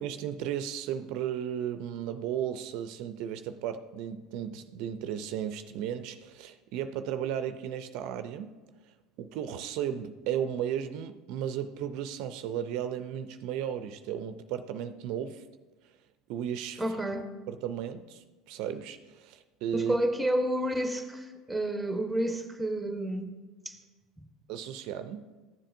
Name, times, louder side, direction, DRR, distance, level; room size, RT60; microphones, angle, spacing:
voice 1, 0.0-8.5 9.2-15.4 16.3-17.0 17.5-19.9 24.5-25.3, right 9 dB, 65° right, 10 dB, 0.4 m, -35 dB
voice 2, 16.8-17.3 19.7-23.3 23.6-23.8 24.2-24.3, right 1 dB, 5° right, 6 dB, 1.0 m, -30 dB
13.5 x 7.5 x 2.6 m, 1.2 s
hypercardioid pair, 85°, 0 cm